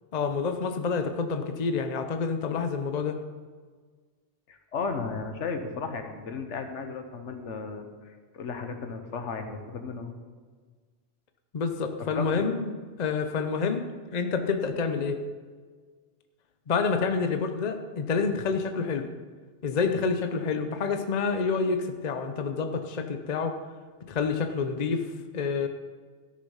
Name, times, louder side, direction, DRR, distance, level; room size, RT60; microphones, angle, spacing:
voice 1, 0.1-3.2 11.5-12.7 13.0-15.2 16.7-19.1 19.6-23.6 24.1-25.7, left 5 dB, 40° left, 7 dB, 0.8 m, -28 dB
voice 2, 4.5-10.1 12.1-12.5, left 4 dB, 80° left, 6 dB, 1.3 m, -35 dB
13.5 x 6.5 x 5.6 m, 1.5 s
omnidirectional pair, 1.2 m